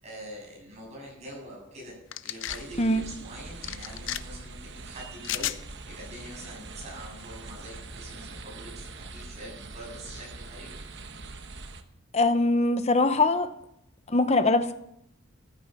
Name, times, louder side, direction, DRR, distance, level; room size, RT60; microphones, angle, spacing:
voice 1, 0.0-10.7, right 1 dB, 30° right, -3 dB, 7.5 m, -44 dB
sound 1, 2.1-2.6 3.6-4.2 5.2-5.6, left 12 dB, 60° left, 0.6 m, -32 dB
sound 2, 2.5-11.8, right 3 dB, 55° right, 1.1 m, -43 dB
voice 2, 12.1-13.5 14.1-14.7, left 2 dB, 30° left, 10 dB, 0.8 m, -22 dB
14.5 x 10.0 x 6.1 m, 0.80 s
head